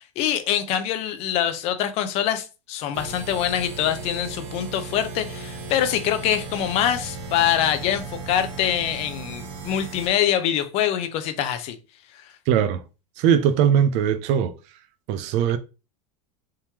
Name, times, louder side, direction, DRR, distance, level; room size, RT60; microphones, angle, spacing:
voice 1, 0.2-11.8, left 10 dB, 40° left, 0.5 m, -24 dB
sound 1, 2.9-10.1, right 4 dB, 80° right, 1.3 m, -36 dB
voice 2, 12.5-12.8 13.2-14.6 15.1-15.6, right 8 dB, 45° right, 0.4 m, -20 dB
3.5 x 3.0 x 2.8 m
supercardioid pair, 155°, 17 cm